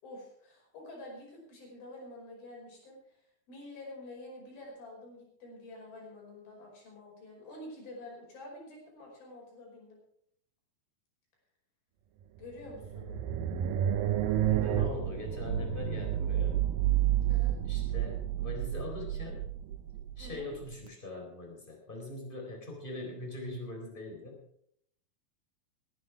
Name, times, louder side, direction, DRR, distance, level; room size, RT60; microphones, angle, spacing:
voice 1, 0.0-3.0 3.5-10.0 12.4-13.1 17.3-17.6 20.2-20.5, left 1 dB, 70° left, -1 dB, 7.2 m, -48 dB
sound 1, 12.4-20.7, right 11 dB, 75° right, 2.6 m, -30 dB
voice 2, 14.4-16.6 17.6-19.5 20.2-24.4, left 2 dB, 15° left, 1 dB, 3.8 m, -42 dB
18.5 x 11.5 x 4.8 m, 0.69 s
omnidirectional pair, 4.4 m